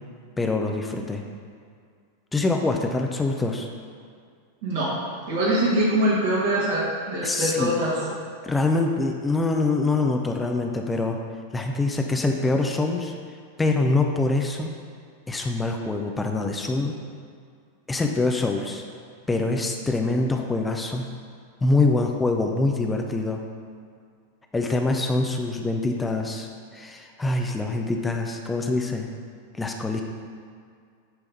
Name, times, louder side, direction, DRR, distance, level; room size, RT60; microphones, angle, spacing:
voice 1, 0.4-1.2 2.3-3.7 7.2-7.7 8.4-11.2 11.5-13.1 13.6-14.7 15.3-16.9 17.9-18.8 19.3-21.0 21.6-23.4 24.5-29.1 29.5-30.0, left 3 dB, 10° left, 3 dB, 0.6 m, -24 dB
voice 2, 4.6-5.0 5.3-7.9, right 1 dB, 55° right, -7 dB, 1.8 m, -23 dB
8.5 x 3.5 x 5.4 m, 2.2 s
figure-of-eight pair, 90°, 0 cm